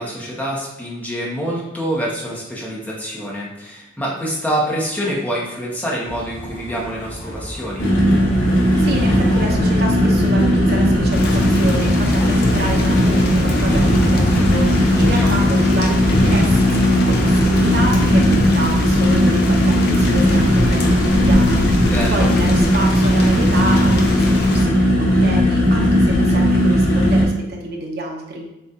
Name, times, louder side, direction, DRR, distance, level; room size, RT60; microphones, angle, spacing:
voice 1, 0.0-7.9 14.9-15.3 21.8-22.3, right 1 dB, 10° left, -4 dB, 0.8 m, -26 dB
sound 1, 6.0-18.0, equal, 30° left, 1.1 m, -33 dB
sound 2, 7.8-27.2, equal, 75° left, 1.4 m, -16 dB
voice 2, 8.8-28.5, right 1 dB, 50° right, 0 dB, 0.8 m, -28 dB
Thunder / Rain, 11.1-24.6, left 1 dB, 50° left, 0.6 m, -25 dB
7.1 x 2.4 x 2.8 m, 0.96 s
head